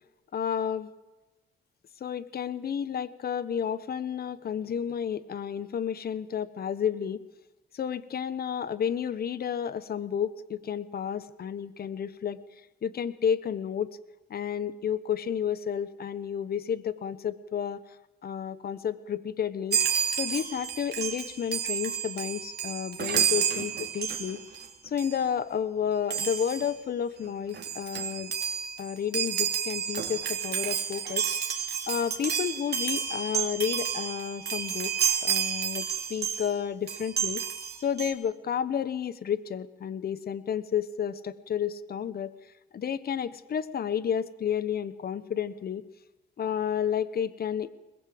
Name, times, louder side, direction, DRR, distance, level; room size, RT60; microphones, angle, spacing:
voice 1, 0.3-0.9 2.0-7.2 7.7-12.4 12.8-13.9 14.3-17.8 18.2-19.8 20.1-24.4 24.8-28.3 28.8-34.9 35.2-37.4 37.8-42.3 42.7-45.8 46.4-47.7, left 8 dB, 50° left, 15 dB, 1.1 m, -31 dB
Chime, 19.7-24.7 25.0-25.2 26.1-26.7 27.3-27.4 27.5-36.5 36.9-38.1, right 8 dB, 55° right, 3.0 m, -30 dB
21.5 x 20.5 x 7.8 m, 1.1 s
cardioid pair, 90°, 20 cm